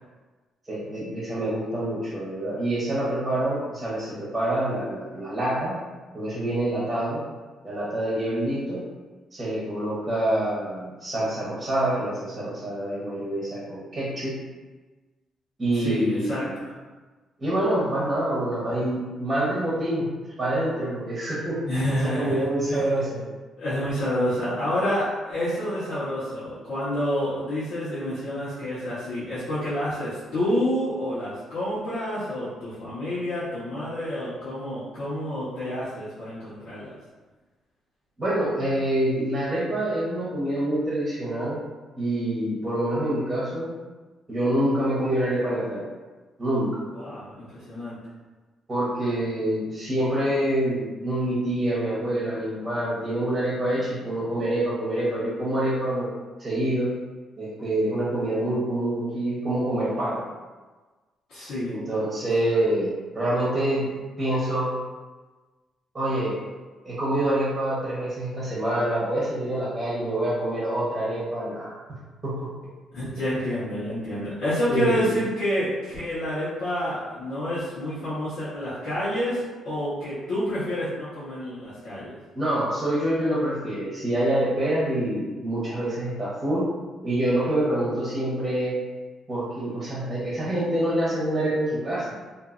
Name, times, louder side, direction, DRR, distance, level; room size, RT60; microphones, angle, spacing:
voice 1, 0.7-5.8 6.1-7.2 7.6-8.8 9.3-14.4 15.6-16.6 17.4-20.1 20.4-23.3 38.2-41.6 42.0-43.7 44.3-45.8 46.4-46.8 48.7-56.1 56.4-56.9 57.4-60.2 61.7-63.9 64.2-64.7 65.9-66.4 66.8-71.7 72.2-72.5 74.7-75.0 82.3-86.7 87.0-88.8 89.3-92.1, right 1 dB, 30° right, -7 dB, 1.0 m, -26 dB
voice 2, 15.7-16.7 21.6-22.8 23.6-36.9 46.9-48.0 61.3-61.8 72.9-82.2, equal, 70° left, -14 dB, 1.1 m, -28 dB
2.6 x 2.6 x 2.5 m, 1.3 s
cardioid pair, 90°, 0 cm